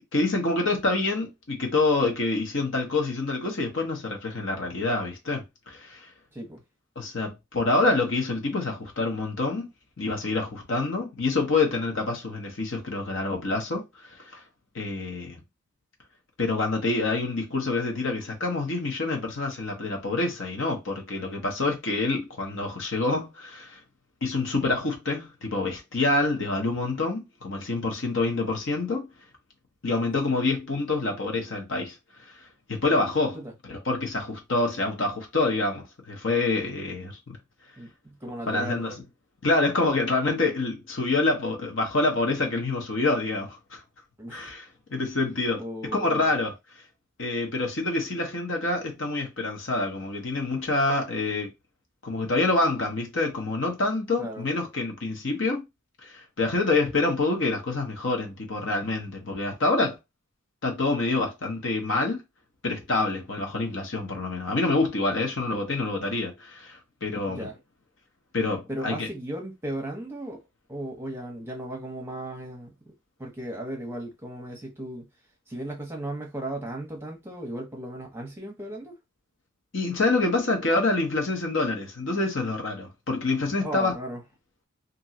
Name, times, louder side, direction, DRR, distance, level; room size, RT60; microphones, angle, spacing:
voice 1, 0.1-6.1 7.0-9.7 10.0-14.4 14.7-15.4 16.4-23.8 24.2-29.1 29.8-32.0 32.2-32.4 32.7-37.4 38.5-39.0 39.4-43.8 44.3-45.6 45.9-46.5 47.2-51.5 52.0-55.6 56.0-60.0 60.6-62.2 62.6-67.5 68.3-69.1 79.7-83.9, left 3 dB, 65° left, 0.9 m, -27 dB
voice 2, 37.8-38.8 44.2-44.5 45.6-46.3 54.2-54.5 67.3-67.5 68.7-70.4 70.7-72.7 73.2-75.0 75.5-78.9 83.6-84.2, right 1 dB, 10° right, 0.9 m, -36 dB
3.0 x 2.7 x 2.8 m
head